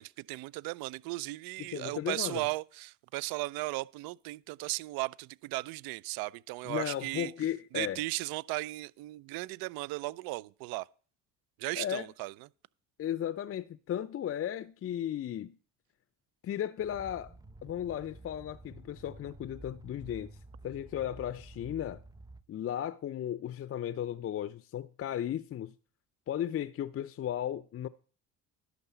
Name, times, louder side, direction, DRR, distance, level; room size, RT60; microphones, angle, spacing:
voice 1, 0.0-7.3 7.7-10.9 11.6-12.3, right 21 dB, 65° right, 0.5 m, -36 dB
voice 2, 1.7-2.4 6.7-8.0 11.8-12.1 13.0-15.6 16.4-17.3 17.6-20.4 20.6-22.0 22.5-25.7 26.3-27.9, left 10 dB, 35° left, 0.5 m, -35 dB
sound 1, 16.8-22.4, right 2 dB, 10° right, 0.7 m, -51 dB
11.0 x 3.9 x 7.1 m
hypercardioid pair, 65°, 38 cm